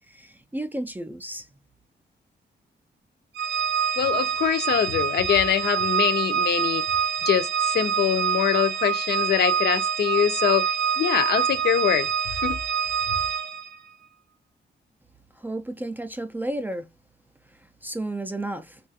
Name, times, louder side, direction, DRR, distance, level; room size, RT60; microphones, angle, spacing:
voice 1, 0.0-1.5 15.3-16.9 17.5-18.8, right 1 dB, 10° right, 0.3 m, -33 dB
Organ, 3.3-13.8, right 8 dB, 70° right, 0.6 m, -26 dB
voice 2, 4.0-6.9 7.2-12.1 12.4-12.6, left 9 dB, 65° left, 0.5 m, -24 dB
3.1 x 2.3 x 2.6 m
wide cardioid pair, 175°, 18 cm